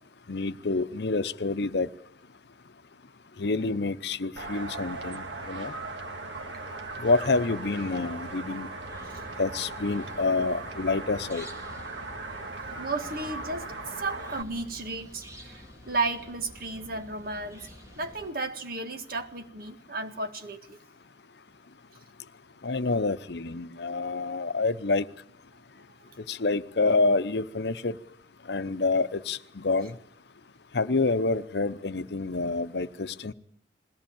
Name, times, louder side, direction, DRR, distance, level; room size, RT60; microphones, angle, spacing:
voice 1, 0.3-1.9 3.4-5.7 7.0-8.7 9.4-11.4 22.6-25.0 26.3-27.9 28.5-29.9 30.7-33.3, left 3 dB, 65° left, 0.8 m, -27 dB
sound 1, 4.4-14.4, right 3 dB, 85° right, 1.8 m, -38 dB
sound 2, 8.8-18.3, equal, 15° right, 2.6 m, -50 dB
voice 2, 12.5-17.7 18.0-20.8, right 3 dB, 55° right, 1.7 m, -34 dB
21.0 x 17.5 x 8.8 m
head